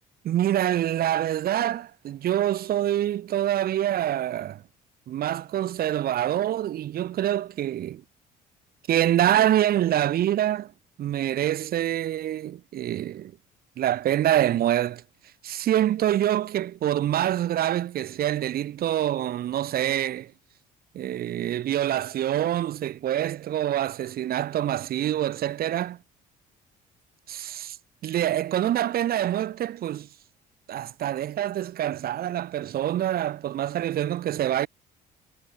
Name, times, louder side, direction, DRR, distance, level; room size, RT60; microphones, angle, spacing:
voice 1, 0.2-4.6 5.1-8.0 8.9-10.7 11.0-13.3 13.8-15.0 15.4-20.3 20.9-26.0 28.0-30.1 30.7-34.7, right 12 dB, 65° right, 6.3 m, -25 dB
cardioid pair, 110°, 17 cm